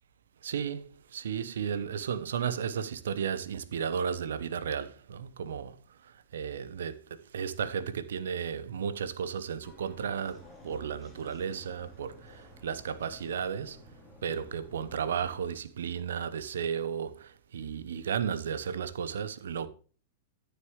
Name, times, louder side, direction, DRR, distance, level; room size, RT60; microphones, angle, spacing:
voice 1, 0.4-5.8 6.3-13.8 14.2-19.7, right 7 dB, 70° right, 0.9 m, -34 dB
sound 1, 9.6-15.4, equal, 10° left, 3.3 m, -53 dB
13.5 x 6.7 x 3.1 m
figure-of-eight pair, 100°, 0 cm